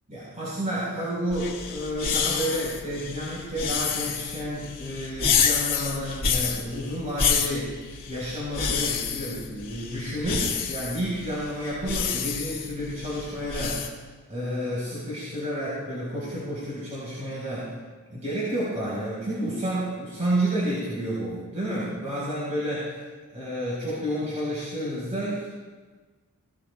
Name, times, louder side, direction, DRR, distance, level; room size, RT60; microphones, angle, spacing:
voice 1, 0.1-7.8 8.1-13.9 14.3-17.7 18.1-23.0 23.3-25.5, equal, 35° right, -7 dB, 4.4 m, -30 dB
sound 1, 1.3-13.9, left 6 dB, 40° left, 2.1 m, -29 dB
21.0 x 17.5 x 2.3 m, 1.4 s
head